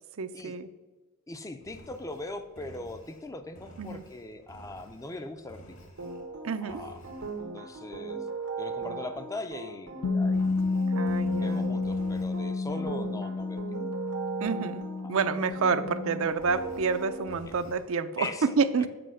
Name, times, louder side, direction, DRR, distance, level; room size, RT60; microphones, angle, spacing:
voice 1, 0.2-0.7 3.8-4.0 6.4-6.8 10.9-11.7 14.4-18.3 18.6-18.9, right 5 dB, 60° right, 11 dB, 0.5 m, -29 dB
voice 2, 1.3-5.8 6.6-7.0 7.5-8.3 8.6-10.9 11.3-13.6 15.0-15.2 18.2-18.5, left 2 dB, 15° left, 8 dB, 0.4 m, -40 dB
Engine, 1.6-6.3 6.7-7.4 10.2-12.5 16.3-17.9, right 1 dB, 60° left, 1.5 m, -52 dB
sound 1, 6.0-17.3, right 4 dB, 90° right, 1.2 m, -38 dB
Bass guitar, 10.0-16.3, left 3 dB, 85° left, 0.7 m, -30 dB
7.8 x 5.0 x 6.2 m, 1.3 s
head